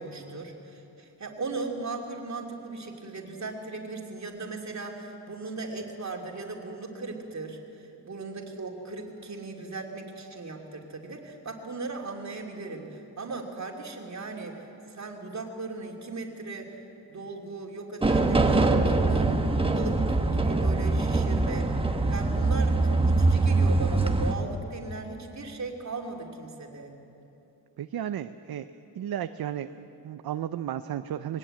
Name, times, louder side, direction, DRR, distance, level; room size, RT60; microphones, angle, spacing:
voice 1, 0.0-16.8 17.1-19.4 19.7-21.8 22.1-26.9, right 3 dB, 40° right, 1 dB, 2.8 m, -38 dB
sound 1, 18.0-24.3, right 3 dB, 10° right, 1.2 m, -23 dB
voice 2, 27.8-28.7 29.0-31.4, right 10 dB, 55° right, 10 dB, 0.6 m, -34 dB
21.5 x 19.0 x 8.8 m, 2.9 s
wide cardioid pair, 130°, 43 cm